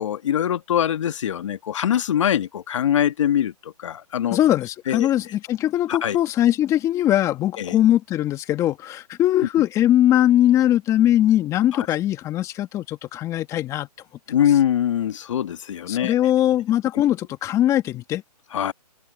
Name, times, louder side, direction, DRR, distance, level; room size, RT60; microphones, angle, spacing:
voice 1, 0.0-4.4 4.9-5.1 5.9-6.2 7.6-7.8 11.7-11.9 14.3-16.1 18.5-18.7, left 10 dB, 50° left, 1.7 m, -23 dB
voice 2, 4.3-13.9 15.9-18.2, left 12 dB, 15° left, 1.9 m, -20 dB
hypercardioid pair, 150°, 21 cm